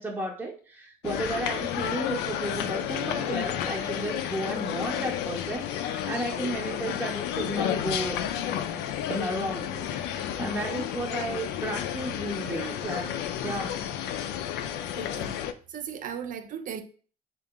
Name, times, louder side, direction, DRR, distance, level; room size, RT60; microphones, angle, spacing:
voice 1, 0.0-8.2 9.1-13.8, right 1 dB, 10° right, 0.6 m, -33 dB
sound 1, 1.0-15.5, left 10 dB, 90° left, 0.4 m, -31 dB
voice 2, 14.9-15.4 15.7-16.8, right 8 dB, 50° right, 0.5 m, -37 dB
3.6 x 2.4 x 3.5 m
cardioid pair, 110°, 17 cm